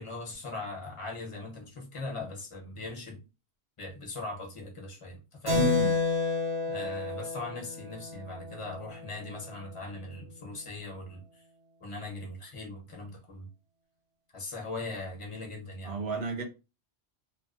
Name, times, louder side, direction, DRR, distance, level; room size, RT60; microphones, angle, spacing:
voice 1, 0.0-3.2 3.8-5.7 6.7-11.4 11.8-13.5 14.3-16.0, left 2 dB, 35° left, 0.7 m, -40 dB
voice 2, 5.5-5.9 15.8-16.4, right 2 dB, 55° right, 0.9 m, -31 dB
Keyboard (musical), 5.5-9.5, left 4 dB, 70° right, 1.3 m, -31 dB
2.6 x 2.1 x 2.4 m
omnidirectional pair, 1.1 m